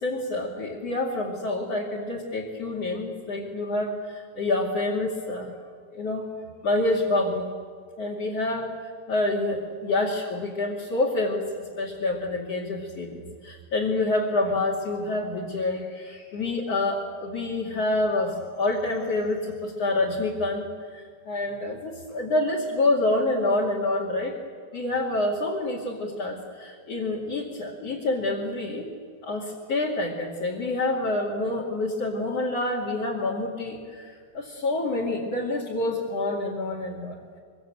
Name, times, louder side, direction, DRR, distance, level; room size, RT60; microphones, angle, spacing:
voice 1, 0.0-5.6 5.9-6.3 6.6-7.5 8.0-8.7 9.1-20.7 20.9-24.3 24.7-28.9 29.2-37.2, left 2 dB, 45° left, 1 dB, 3.3 m, -27 dB
25.0 x 24.5 x 7.8 m, 2.1 s
omnidirectional pair, 4.3 m